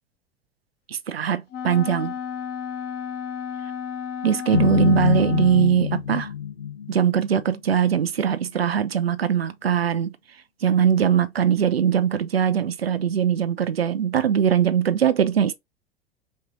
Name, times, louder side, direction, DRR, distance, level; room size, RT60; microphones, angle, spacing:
voice 1, 0.9-2.1 4.2-6.3 6.9-10.1 10.6-15.6, right 8 dB, 80° right, 0.5 m, -21 dB
Wind instrument woodwind instrument, 1.5-5.8, left 8 dB, 30° left, 0.8 m, -33 dB
sound 1, 4.5-7.7, left 9 dB, 85° left, 1.0 m, -25 dB
5.3 x 2.4 x 2.7 m
figure-of-eight pair, 85°, 30 cm